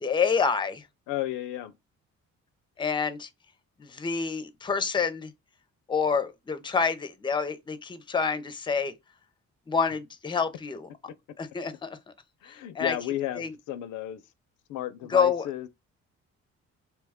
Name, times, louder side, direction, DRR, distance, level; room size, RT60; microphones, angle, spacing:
voice 1, 0.0-0.8 2.8-3.3 3.8-5.3 5.9-8.9 9.7-10.9 11.4-11.9 12.5-13.0 13.4-13.5 15.1-15.5, left 5 dB, 15° left, 0.5 m, -27 dB
voice 2, 1.1-1.7 12.4-14.2 14.7-15.7, left 13 dB, 80° left, 0.5 m, -33 dB
2.9 x 2.2 x 3.4 m
cardioid pair, 90°, 30 cm